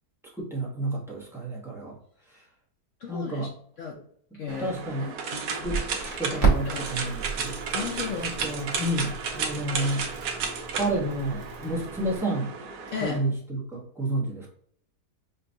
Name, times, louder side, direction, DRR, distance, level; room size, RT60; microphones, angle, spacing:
voice 1, 0.4-2.0 3.1-3.5 4.3-5.1 5.6-5.8 6.2-7.5 8.2-10.1 10.7-12.5 13.0-14.5, right 1 dB, 5° right, -4 dB, 0.5 m, -30 dB
voice 2, 3.0-3.5 3.8-4.0 4.4-5.7 6.6-7.3 7.7-8.6 12.9-13.2, left 6 dB, 70° left, 0 dB, 0.7 m, -36 dB
sound 1, 4.5-13.2, right 5 dB, 75° right, 1.2 m, -33 dB
Crackle, 5.6-12.2, right 4 dB, 50° right, 1.2 m, -32 dB
5.5 x 2.3 x 2.6 m, 0.63 s
omnidirectional pair, 1.8 m